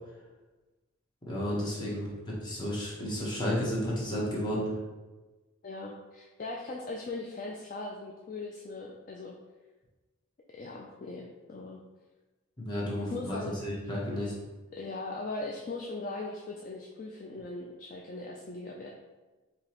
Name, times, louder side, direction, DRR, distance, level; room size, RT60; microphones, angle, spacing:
voice 1, 1.3-4.7 12.6-14.3, equal, 20° left, -5 dB, 1.0 m, -32 dB
voice 2, 5.6-9.3 10.5-11.8 13.1-13.6 14.7-18.9, left 2 dB, 40° left, -1 dB, 0.3 m, -39 dB
4.8 x 2.9 x 3.0 m, 1.2 s
head